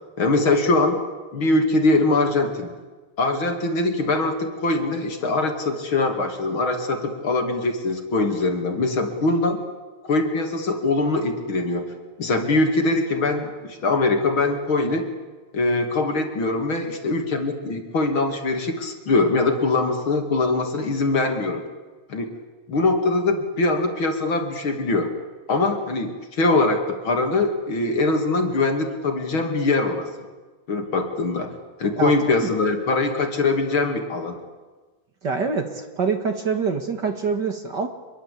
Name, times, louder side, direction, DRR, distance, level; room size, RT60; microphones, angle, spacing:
voice 1, 0.2-1.0 1.3-2.7 3.2-9.6 10.0-11.9 12.2-15.1 15.5-21.6 22.1-22.3 22.7-25.1 25.5-30.1 30.7-31.5 31.8-34.4, left 2 dB, 40° left, 4 dB, 2.9 m, -22 dB
voice 2, 35.2-37.9, right 5 dB, 40° right, 6 dB, 1.7 m, -25 dB
25.5 x 22.5 x 8.4 m, 1.3 s
omnidirectional pair, 3.8 m